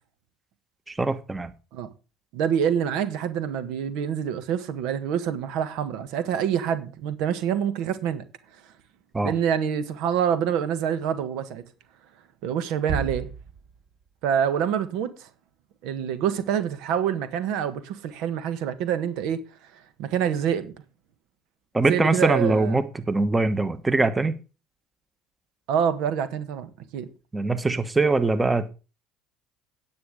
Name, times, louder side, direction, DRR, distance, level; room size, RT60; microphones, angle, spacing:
voice 1, 0.9-1.5 9.1-9.3 21.7-24.3 27.3-28.7, right 3 dB, 15° right, 1.3 m, -22 dB
voice 2, 2.3-8.2 9.2-11.6 12.4-13.3 14.2-15.3 15.8-19.5 19.7-20.7 21.8-22.7 25.7-27.1, right 8 dB, 70° right, 1.4 m, -26 dB
Bass drum, 12.9-14.3, right 5 dB, 50° right, 2.4 m, -33 dB
9.4 x 8.7 x 5.1 m
hypercardioid pair, 70°, 0 cm